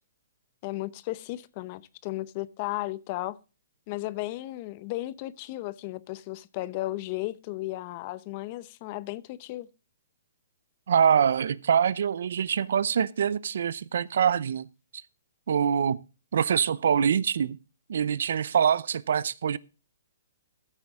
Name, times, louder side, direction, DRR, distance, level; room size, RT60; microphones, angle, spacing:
voice 1, 0.6-3.4 3.9-9.7, left 18 dB, 35° left, 0.7 m, -35 dB
voice 2, 10.9-14.7 15.5-16.0 16.3-17.6 17.9-19.6, right 8 dB, 70° right, 0.6 m, -24 dB
14.0 x 8.1 x 3.6 m
hypercardioid pair, 150°, 0 cm